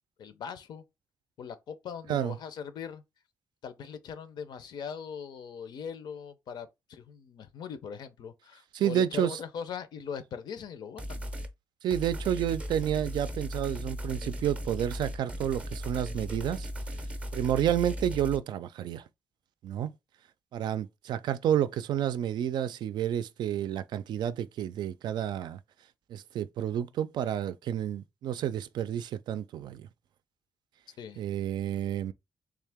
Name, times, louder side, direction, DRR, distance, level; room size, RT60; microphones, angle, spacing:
voice 1, 0.2-0.8 1.4-3.0 3.6-11.2 31.0-31.2, left 7 dB, 70° left, 0.6 m, -40 dB
voice 2, 8.7-9.4 11.8-16.7 17.3-19.0 19.6-19.9 20.5-25.6 26.1-29.9 31.2-32.1, right 10 dB, 70° right, 0.3 m, -30 dB
sound 1, 11.0-11.5 11.9-18.4, equal, 15° right, 0.5 m, -37 dB
3.6 x 2.8 x 3.5 m
cardioid pair, 150°, 8 cm